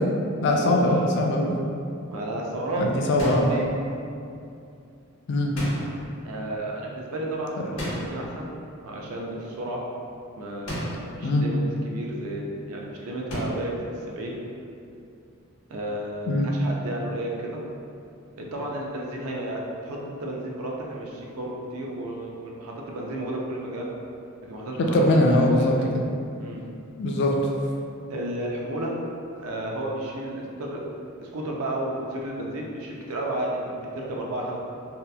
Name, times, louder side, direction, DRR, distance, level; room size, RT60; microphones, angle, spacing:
voice 1, 0.4-1.6 2.8-3.5 5.3-5.5 11.2-11.5 16.3-16.5 24.8-25.8 27.0-27.3, left 1 dB, 55° left, 0 dB, 0.3 m, -21 dB
voice 2, 2.1-2.8 3.2-3.7 6.2-8.5 8.8-9.8 10.4-14.4 15.7-17.6 18.4-24.0 24.5-25.9 26.4-26.6 28.1-29.0 29.4-34.6, right 1 dB, 85° right, -2 dB, 0.4 m, -32 dB
sound 1, 3.2-3.7 5.6-6.2 7.8-8.3 10.7-11.2 13.3-13.8, equal, 80° left, 0.8 m, -32 dB
2.7 x 2.3 x 2.2 m, 2.5 s
head